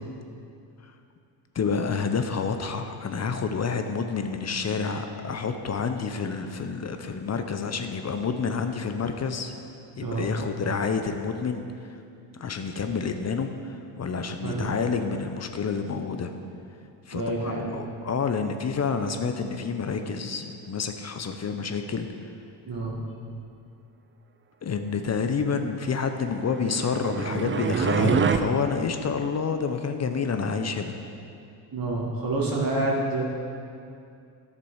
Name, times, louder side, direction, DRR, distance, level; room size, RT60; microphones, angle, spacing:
voice 1, 1.5-9.5 10.0-11.6 12.4-16.3 17.1-22.1 24.6-30.9, left 5 dB, 30° left, 7 dB, 0.7 m, -29 dB
voice 2, 10.0-10.3 14.4-14.7 17.1-17.8 22.7-23.0 31.7-33.2, right 2 dB, 40° right, -3 dB, 2.0 m, -28 dB
sound 1, 26.4-28.4, right 6 dB, 25° right, 0.5 m, -25 dB
10.0 x 6.8 x 4.8 m, 2.5 s
supercardioid pair, 70°, 50 cm